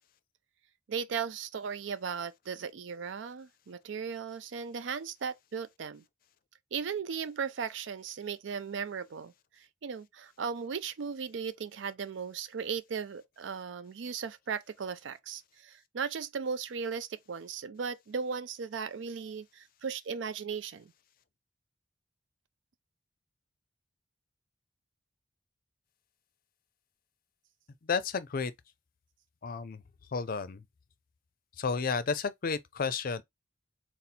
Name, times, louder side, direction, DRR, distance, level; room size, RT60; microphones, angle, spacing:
voice 1, 0.9-6.0 6.7-20.9, right 6 dB, 75° right, 0.4 m, -37 dB
voice 2, 27.9-28.5 29.4-29.8 30.1-30.6 31.6-33.2, left 5 dB, 50° left, 0.5 m, -32 dB
4.1 x 2.0 x 4.2 m
head